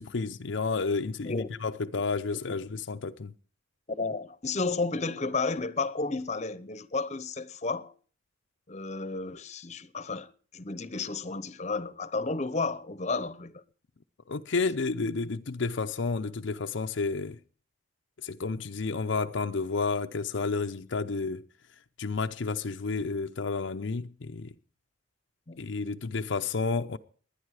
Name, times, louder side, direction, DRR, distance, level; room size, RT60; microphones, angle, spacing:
voice 1, 0.0-3.3 14.3-17.4 18.2-21.4 22.0-24.5 25.6-27.0, left 4 dB, 65° left, 0.6 m, -31 dB
voice 2, 4.0-7.9 8.7-13.6 25.5-25.6, left 3 dB, 35° left, 0.8 m, -32 dB
20.5 x 9.8 x 4.8 m
head